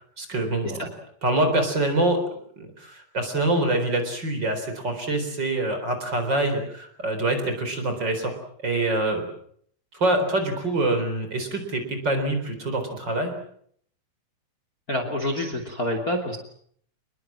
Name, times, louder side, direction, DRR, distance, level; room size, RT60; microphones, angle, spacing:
voice 1, 0.2-0.8 1.2-2.2 2.6-8.3 8.6-9.2 10.0-13.3, right 2 dB, 30° right, 6 dB, 4.5 m, -25 dB
voice 2, 14.9-16.4, left 1 dB, 25° left, 6 dB, 3.0 m, -27 dB
28.0 x 21.0 x 7.6 m, 0.65 s
omnidirectional pair, 3.8 m